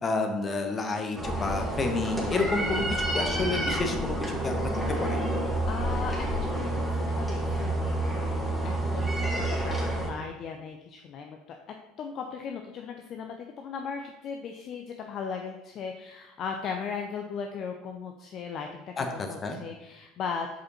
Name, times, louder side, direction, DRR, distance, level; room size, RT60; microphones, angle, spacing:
voice 1, 0.0-5.2 19.0-19.1 19.4-19.6, left 3 dB, 30° left, 4 dB, 1.2 m, -30 dB
sound 1, 1.2-10.1, right 1 dB, 5° right, 2.1 m, -29 dB
voice 2, 5.7-20.6, left 6 dB, 45° left, 4 dB, 0.6 m, -37 dB
7.1 x 5.0 x 4.2 m, 0.96 s
figure-of-eight pair, 65°, 0 cm